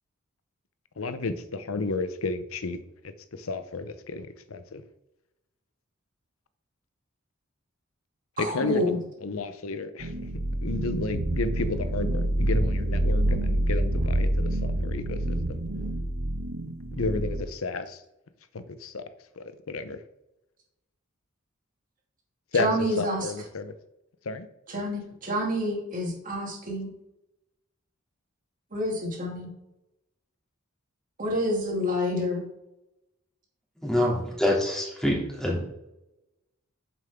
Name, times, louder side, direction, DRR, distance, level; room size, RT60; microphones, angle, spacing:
voice 1, 1.0-2.8 3.0-4.8 8.4-10.3 10.6-15.6 16.9-18.0 18.5-19.0 19.4-20.0 22.5-22.7 23.0-23.7 24.2-24.5, left 3 dB, 85° left, 12 dB, 0.7 m, -32 dB
voice 2, 8.4-9.0 22.5-23.3 24.7-26.9 28.7-29.5 31.2-32.4, equal, 40° right, -1 dB, 2.4 m, -28 dB
sound 1, 10.0-17.4, right 1 dB, 90° right, 1.4 m, -27 dB
voice 3, 33.8-35.6, left 1 dB, 5° left, -4 dB, 2.6 m, -25 dB
8.9 x 7.4 x 3.6 m, 0.90 s
head